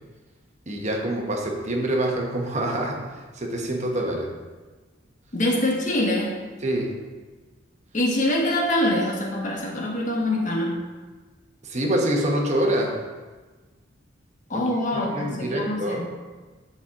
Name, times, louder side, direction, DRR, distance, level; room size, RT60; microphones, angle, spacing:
voice 1, 0.7-4.3 6.6-6.9 11.6-13.0 14.5-16.1, right 1 dB, 35° right, 0 dB, 1.0 m, -26 dB
voice 2, 5.3-6.4 7.9-10.8 14.5-16.1, left 1 dB, 40° left, 0 dB, 1.2 m, -24 dB
11.0 x 4.4 x 3.7 m, 1.3 s
head